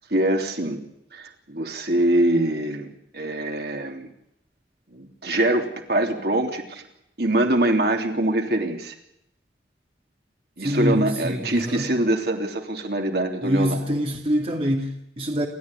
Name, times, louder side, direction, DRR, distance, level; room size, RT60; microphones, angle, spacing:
voice 1, 0.1-0.8 1.1-2.9 3.1-4.1 4.9-6.9 7.2-8.9 10.6-13.8, right 1 dB, 60° right, 3.2 m, -23 dB
voice 2, 10.6-11.9 13.4-15.5, equal, 35° right, 2.3 m, -25 dB
29.0 x 13.0 x 9.9 m
head